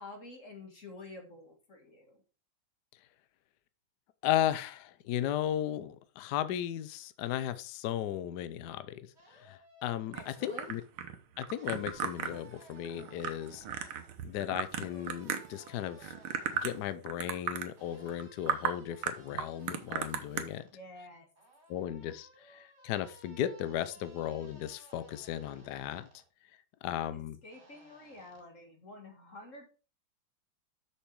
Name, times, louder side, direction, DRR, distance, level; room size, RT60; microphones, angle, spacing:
voice 1, 0.0-2.2 10.1-10.7 20.7-21.3 27.4-29.7, left 2 dB, 40° left, 3 dB, 1.9 m, -49 dB
voice 2, 4.2-9.1 9.4-10.8 11.4-13.6 14.2-16.1 16.5-20.6 21.7-26.1 26.8-27.4, left 11 dB, 70° left, 13 dB, 1.0 m, -35 dB
sound 1, 9.2-10.9 11.6-14.1 14.8-17.0 17.8-20.7 21.4-26.2 27.5-28.4, right 2 dB, 30° right, 2.7 m, -59 dB
sound 2, 10.1-15.7 16.0-16.8 17.1-17.7 18.1-18.2 18.5-18.7 19.0-20.4, right 8 dB, 85° right, 1.8 m, -35 dB
6.6 x 6.1 x 4.6 m, 0.35 s
omnidirectional pair, 2.3 m